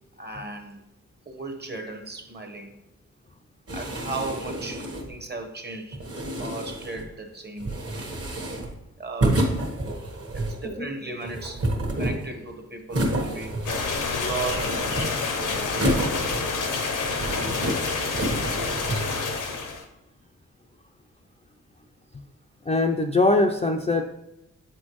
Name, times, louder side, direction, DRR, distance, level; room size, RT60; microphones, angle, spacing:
voice 1, 0.2-0.8 1.3-2.7 3.7-6.0 6.4-7.7 9.0-9.4 10.3-11.7 12.0-13.5 14.0-14.7 15.4-15.7, right 3 dB, 35° right, 5 dB, 1.0 m, -35 dB
sound 1, 3.7-5.2 5.9-7.1 7.6-8.8 9.2-10.7 11.2-12.4 12.9-14.0 14.3-15.3 15.7-16.7 17.0-17.8 18.1-19.1, right 1 dB, 50° right, 1.3 m, -29 dB
sound 2, 13.7-19.8, left 4 dB, 80° left, 0.8 m, -28 dB
voice 2, 22.7-24.1, left 2 dB, 20° left, 4 dB, 0.4 m, -22 dB
7.6 x 4.2 x 3.1 m, 0.89 s
cardioid pair, 70°, 30 cm